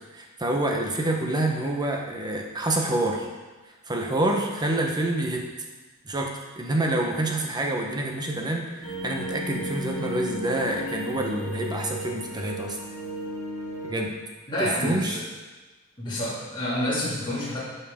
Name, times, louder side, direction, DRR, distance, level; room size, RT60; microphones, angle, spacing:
voice 1, 0.1-3.3 3.8-5.4 6.0-12.8 13.8-14.1 14.6-15.2, right 1 dB, 20° right, 1 dB, 1.0 m, -27 dB
sound 1, 8.8-14.1, equal, 85° left, 1.5 m, -34 dB
voice 2, 14.5-15.2 16.0-17.6, left 1 dB, 20° left, -8 dB, 2.3 m, -28 dB
11.5 x 5.7 x 3.7 m, 1.2 s
head